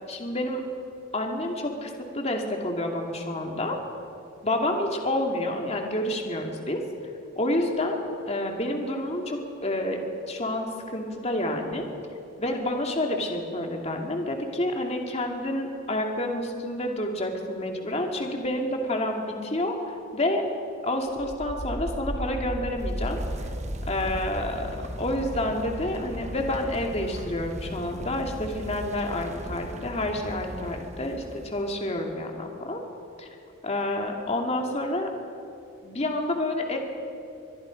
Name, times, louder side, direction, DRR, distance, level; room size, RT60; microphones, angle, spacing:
voice 1, 0.1-0.6 1.1-3.8 4.4-6.8 7.4-10.0 10.3-11.9 12.4-20.4 20.8-23.2 23.9-24.7 25.0-32.8 33.2-33.3 33.6-35.1 35.8-36.8, left 1 dB, 30° left, 2 dB, 2.4 m, -29 dB
sound 1, 21.1-31.9, equal, 35° right, 1.2 m, -36 dB
24.0 x 21.5 x 5.2 m, 2.6 s
head